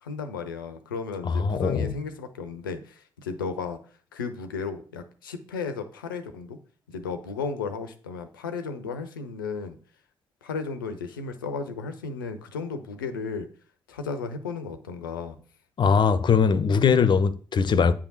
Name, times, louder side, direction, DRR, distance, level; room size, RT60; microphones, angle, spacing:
voice 1, 0.0-3.8 4.1-6.6 6.9-9.8 10.4-13.5 13.9-15.4, left 5 dB, 85° left, 0.7 m, -34 dB
voice 2, 1.3-2.0 15.8-17.9, left 6 dB, 45° left, 0.7 m, -21 dB
8.8 x 3.6 x 6.0 m
figure-of-eight pair, 40°, 11 cm